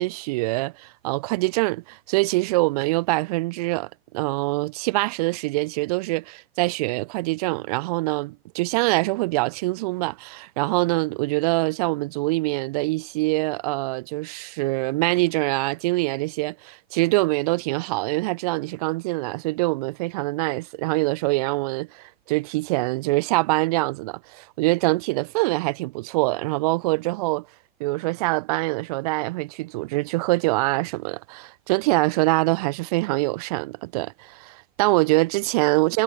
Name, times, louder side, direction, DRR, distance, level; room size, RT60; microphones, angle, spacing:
voice 1, 0.0-27.5 27.8-36.0, right 22 dB, 35° right, 0.8 m, -24 dB
figure-of-eight pair, 100°, 31 cm